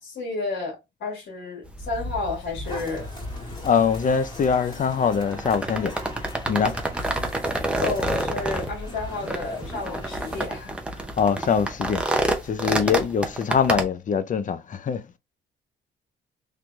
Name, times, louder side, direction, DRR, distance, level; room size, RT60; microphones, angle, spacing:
voice 1, 0.0-3.1 7.8-10.8, left 3 dB, 65° left, 1.9 m, -31 dB
sound 1, 1.6-13.8, right 1 dB, 5° right, 0.6 m, -29 dB
sound 2, 2.6-10.5, left 2 dB, 25° left, 1.8 m, -39 dB
voice 2, 3.6-5.9 6.5-6.8 11.2-12.0 12.4-15.0, left 6 dB, 40° left, 0.5 m, -23 dB
3.3 x 3.0 x 2.4 m
cardioid pair, 90°, 20 cm